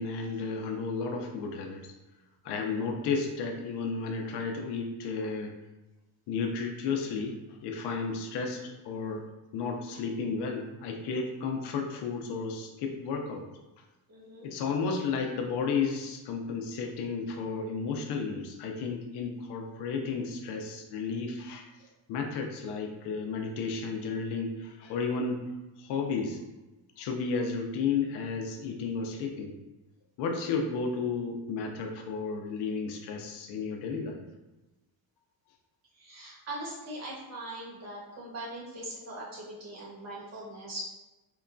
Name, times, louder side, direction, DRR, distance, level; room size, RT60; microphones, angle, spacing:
voice 1, 0.0-1.8 2.4-5.5 6.3-9.3 9.5-13.4 14.4-21.7 22.1-25.4 25.8-26.4 27.0-29.5 30.2-34.2, left 5 dB, 75° left, 3 dB, 0.5 m, -33 dB
voice 2, 2.4-2.8 5.2-5.3 14.1-14.5 35.9-40.9, right 1 dB, 40° right, -5 dB, 1.1 m, -41 dB
3.0 x 2.2 x 2.5 m, 1.0 s
cardioid pair, 155°, 41 cm